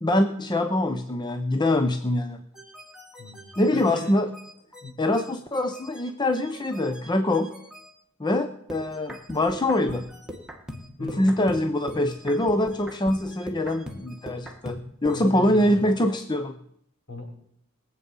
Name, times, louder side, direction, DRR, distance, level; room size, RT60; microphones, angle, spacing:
voice 1, 0.0-2.4 3.6-4.3 5.0-7.5 8.2-10.0 11.0-16.6, left 1 dB, 20° left, 7 dB, 0.7 m, -24 dB
sound 1, 2.5-7.9 8.7-15.3, equal, 5° right, 1.9 m, -42 dB
voice 2, 3.2-4.1 4.8-4.9 11.0-11.3 15.1-15.9 17.1-17.3, left 3 dB, 65° left, 0 dB, 5.5 m, -37 dB
21.5 x 8.1 x 5.5 m, 0.71 s
head